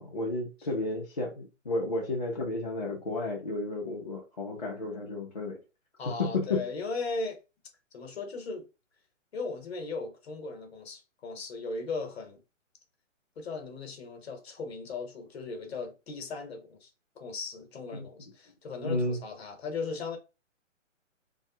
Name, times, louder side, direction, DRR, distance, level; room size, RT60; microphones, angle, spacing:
voice 1, 0.0-5.6 6.0-6.7 17.9-18.1 18.8-19.2, left 2 dB, 35° left, 0.4 m, -32 dB
voice 2, 6.0-7.4 7.9-8.6 9.3-12.4 13.4-16.9 17.2-20.2, left 4 dB, 50° left, 0.9 m, -37 dB
2.6 x 2.3 x 2.7 m
hypercardioid pair, 160°, 39 cm